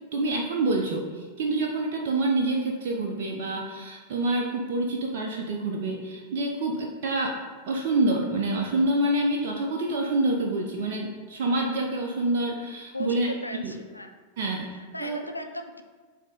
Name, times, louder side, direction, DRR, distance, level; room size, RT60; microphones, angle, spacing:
voice 1, 0.1-7.4 7.7-13.3 13.6-13.7 14.4-14.7 15.0-15.2, right 2 dB, 50° right, 0 dB, 0.7 m, -27 dB
voice 2, 12.9-14.1 14.7-15.8, left 2 dB, 85° left, 5 dB, 0.5 m, -37 dB
7.5 x 2.8 x 5.1 m, 1.5 s
figure-of-eight pair, 90°, 0 cm